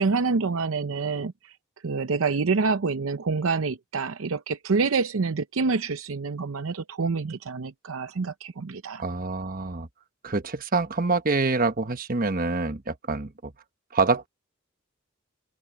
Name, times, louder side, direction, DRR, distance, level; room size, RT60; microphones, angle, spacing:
voice 1, 0.0-1.5 1.8-9.0, right 4 dB, 90° right, 0.7 m, -27 dB
voice 2, 9.0-9.9 10.2-13.5 13.9-14.3, right 3 dB, 45° right, 1.2 m, -26 dB
head